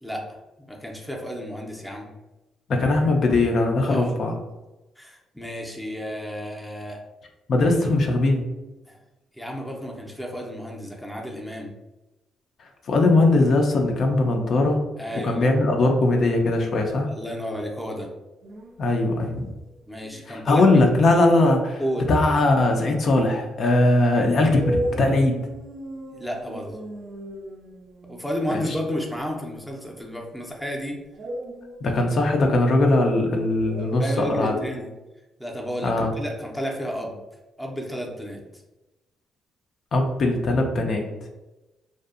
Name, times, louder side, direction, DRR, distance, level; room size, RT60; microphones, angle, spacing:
voice 1, 0.7-2.1 3.8-4.1 5.0-7.0 7.8-7.9 8.9-9.0 9.3-11.7 15.0-15.5 17.1-18.1 19.9-20.6 21.8-22.1 26.1-26.8 28.1-31.0 34.0-34.9 35.4-37.2 37.6-38.4, equal, 5° left, -1 dB, 0.5 m, -32 dB
voice 2, 2.7-4.3 7.5-8.4 12.6-14.8 15.2-17.1 18.8-19.5 20.3-21.8 22.1-25.5 28.7-28.8 31.8-34.6 35.8-36.1 39.9-41.1, left 2 dB, 55° left, 2 dB, 0.4 m, -20 dB
sound 1, 18.4-18.8 19.7-20.2 23.2-23.3 24.4-28.4 31.1-32.4 33.6-34.8, right 1 dB, 55° right, 0.4 m, -34 dB
2.6 x 2.3 x 2.4 m, 1.0 s
cardioid pair, 90°, 0 cm